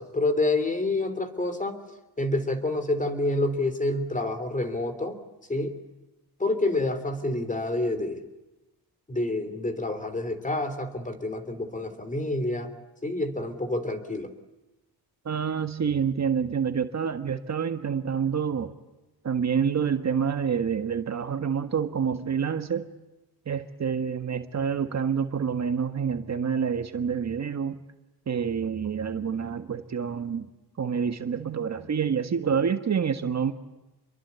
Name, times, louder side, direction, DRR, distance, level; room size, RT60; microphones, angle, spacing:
voice 1, 0.0-1.8 2.2-5.2 5.5-5.7 6.4-8.2 9.1-12.7 13.0-14.3, left 2 dB, 20° left, 10 dB, 3.3 m, -28 dB
voice 2, 15.2-18.7 19.2-22.9 23.5-27.8 28.3-30.5 30.8-33.5, right 7 dB, 45° right, 8 dB, 1.6 m, -27 dB
27.0 x 23.0 x 8.3 m, 1.0 s
cardioid pair, 115°, 39 cm